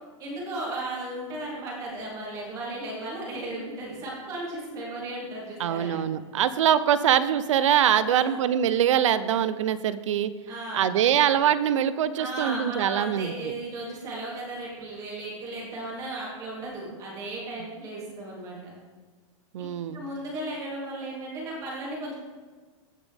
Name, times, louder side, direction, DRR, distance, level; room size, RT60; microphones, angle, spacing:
voice 1, 0.2-6.0 8.0-8.4 10.5-11.0 12.2-18.7 19.9-22.1, right 2 dB, 20° right, -4 dB, 3.2 m, -35 dB
voice 2, 5.6-10.3 10.7-13.5 19.5-20.0, right 9 dB, 65° right, 14 dB, 0.7 m, -23 dB
16.5 x 6.1 x 3.5 m, 1.4 s
supercardioid pair, 170°, 17 cm